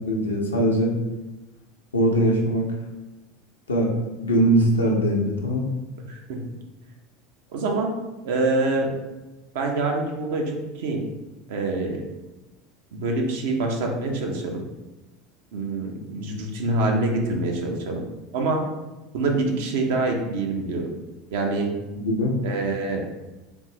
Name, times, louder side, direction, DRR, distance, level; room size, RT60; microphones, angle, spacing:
voice 1, 0.1-0.9 1.9-2.7 3.7-4.0 4.2-5.6 22.0-22.3, right 1 dB, 85° left, 0 dB, 0.6 m, -21 dB
voice 2, 6.1-6.4 7.5-7.9 8.2-8.9 9.5-11.0 11.5-12.0 12.9-14.6 15.5-18.0 18.3-18.6 19.1-20.8 21.3-21.7 22.4-23.1, right 2 dB, 65° right, 1 dB, 0.6 m, -25 dB
3.5 x 2.5 x 2.8 m, 1.1 s
figure-of-eight pair, 75°, 0 cm